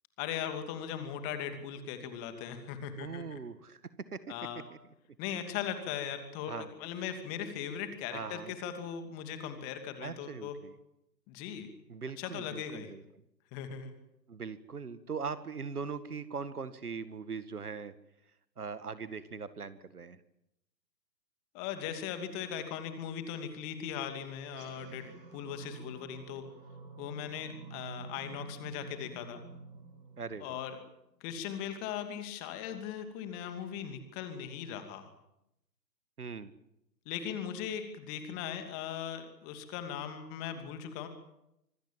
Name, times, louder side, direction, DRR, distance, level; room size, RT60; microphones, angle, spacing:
voice 1, 0.2-3.4 4.3-4.6 5.2-10.5 11.3-11.7 12.2-12.9 13.5-14.0 21.5-25.0 25.3-26.5 27.0-29.4 30.4-30.8 31.2-35.1 37.1-41.1, left 8 dB, 20° left, 8 dB, 2.6 m, -39 dB
voice 2, 3.0-3.8 4.1-4.2 6.5-6.7 8.1-8.5 10.0-10.7 11.9-13.0 14.3-17.9 18.6-20.2 30.2-30.6 36.2-36.5, right 5 dB, 60° right, 13 dB, 2.0 m, -40 dB
sound 1, 24.4-31.1, right 3 dB, 35° right, 6.0 m, -49 dB
26.0 x 21.0 x 7.6 m, 0.83 s
figure-of-eight pair, 135°, 50 cm